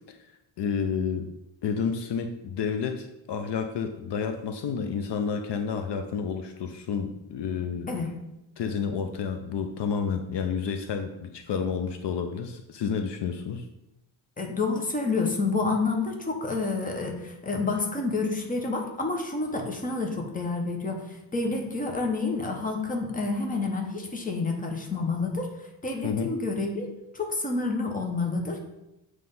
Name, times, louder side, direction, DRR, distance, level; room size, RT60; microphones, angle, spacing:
voice 1, 0.6-1.3 1.6-8.0 8.6-13.7 26.0-26.3, left 6 dB, 60° left, 7 dB, 0.6 m, -30 dB
voice 2, 14.4-25.5 25.8-28.6, left 3 dB, 15° left, 2 dB, 0.9 m, -29 dB
7.6 x 3.2 x 5.3 m, 0.91 s
wide cardioid pair, 160°, 48 cm